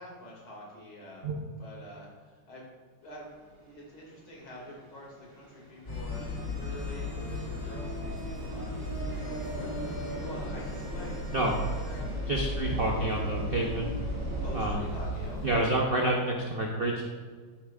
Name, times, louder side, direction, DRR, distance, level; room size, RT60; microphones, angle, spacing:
voice 1, 0.0-2.6 3.0-3.3 3.6-11.2 11.5-12.3 14.4-15.7, equal, 90° left, -4 dB, 3.3 m, -46 dB
sound 1, 3.0-14.7, right 1 dB, 25° right, 1.3 m, -43 dB
sound 2, 5.9-15.6, left 1 dB, 30° left, 2.9 m, -35 dB
voice 2, 12.3-13.9 14.5-14.8 15.4-17.1, right 2 dB, 70° right, -1 dB, 0.5 m, -28 dB
10.5 x 8.3 x 2.5 m, 1.5 s
omnidirectional pair, 2.2 m